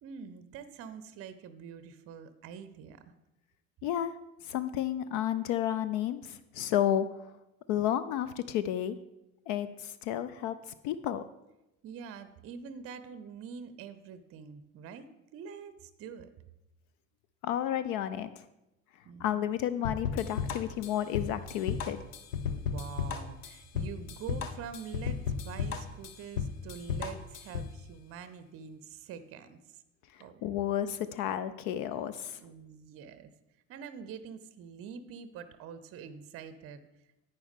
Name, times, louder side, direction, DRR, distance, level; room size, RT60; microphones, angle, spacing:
voice 1, 0.0-3.0 11.8-16.3 19.0-19.6 22.4-29.8 30.1-30.4 32.4-33.3 33.7-36.8, right 7 dB, 35° right, 12 dB, 0.7 m, -45 dB
voice 2, 3.8-4.1 4.5-7.1 7.7-9.0 9.5-10.5 10.8-11.2 17.4-18.4 19.2-22.0 30.4-32.4, left 11 dB, 45° left, 13 dB, 0.5 m, -31 dB
sound 1, 19.8-27.8, left 7 dB, 65° left, 0.9 m, -34 dB
10.5 x 8.7 x 3.6 m, 0.93 s
figure-of-eight pair, 60°, 42 cm